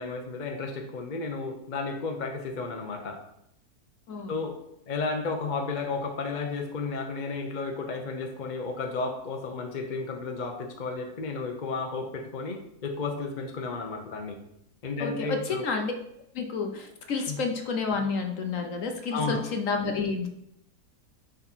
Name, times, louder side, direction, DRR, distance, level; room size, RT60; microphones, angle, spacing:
voice 1, 0.0-3.2 4.3-4.6 4.9-14.4 14.8-15.7 17.3-17.4 19.1-19.4, left 4 dB, 40° left, 4 dB, 0.7 m, -33 dB
voice 2, 15.0-15.9 16.3-20.3, left 4 dB, 60° left, 4 dB, 1.1 m, -30 dB
10.5 x 3.9 x 4.4 m, 0.77 s
omnidirectional pair, 1.7 m